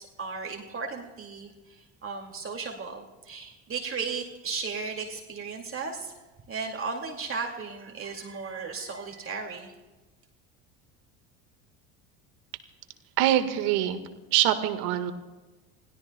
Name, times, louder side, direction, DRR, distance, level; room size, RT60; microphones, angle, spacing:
voice 1, 0.0-6.1 6.5-9.7, right 4 dB, 35° right, 1 dB, 2.3 m, -35 dB
voice 2, 13.2-14.0 14.3-15.1, right 12 dB, 70° right, 8 dB, 1.6 m, -24 dB
29.0 x 16.5 x 2.3 m, 1.2 s
hypercardioid pair, 80°, 40 cm